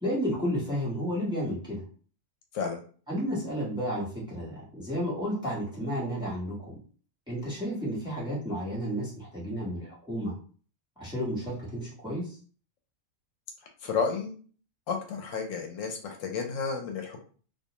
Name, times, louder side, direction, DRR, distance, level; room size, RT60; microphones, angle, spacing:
voice 1, 0.0-1.8 3.1-6.8 7.3-10.3 11.0-12.4, equal, 5° right, -7 dB, 0.9 m, -32 dB
voice 2, 13.8-14.3 14.9-17.2, left 5 dB, 80° left, 3 dB, 1.0 m, -31 dB
2.4 x 2.2 x 2.9 m, 0.42 s
omnidirectional pair, 1.4 m